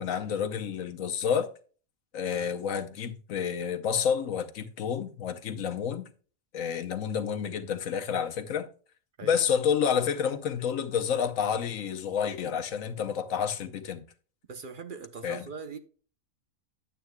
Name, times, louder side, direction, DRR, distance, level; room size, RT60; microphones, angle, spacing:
voice 1, 0.0-1.5 2.1-6.1 6.5-8.7 9.2-14.0 15.2-15.5, left 7 dB, 75° left, 1.2 m, -29 dB
voice 2, 14.5-15.8, right 5 dB, 45° right, 0.8 m, -41 dB
11.5 x 8.1 x 2.3 m
omnidirectional pair, 1.4 m